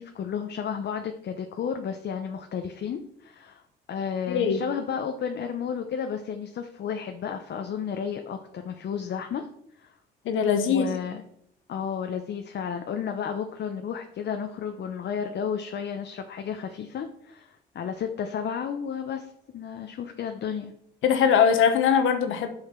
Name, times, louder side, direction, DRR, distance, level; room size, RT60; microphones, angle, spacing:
voice 1, 0.0-3.6 3.9-9.5 9.8-9.9 10.7-11.2 11.7-20.7, left 7 dB, 60° left, 6 dB, 0.8 m, -32 dB
voice 2, 4.3-4.6 10.2-10.9 21.0-22.5, left 7 dB, 85° left, 8 dB, 1.2 m, -21 dB
7.9 x 5.7 x 5.7 m, 0.74 s
cardioid pair, 90°, 20 cm